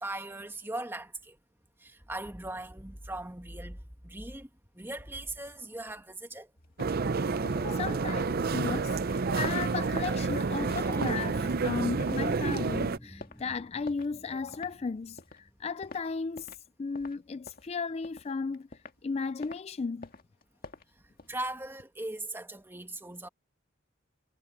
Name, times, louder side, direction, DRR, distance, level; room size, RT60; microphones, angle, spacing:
voice 1, 0.0-1.4 1.8-4.5 4.7-6.5 7.6-7.8 21.3-23.3, right 1 dB, 10° right, 2.3 m, -39 dB
sound 1, 6.6-16.7 16.9-19.1 19.4-19.6 20.0-21.8, left 3 dB, 50° left, 2.0 m, -49 dB
sound 2, 6.8-13.0, right 4 dB, 50° right, 0.6 m, -29 dB
voice 2, 7.5-18.7 19.0-20.1, left 4 dB, 35° left, 0.4 m, -35 dB
sound 3, 10.8-15.5, equal, 15° left, 7.8 m, -48 dB
head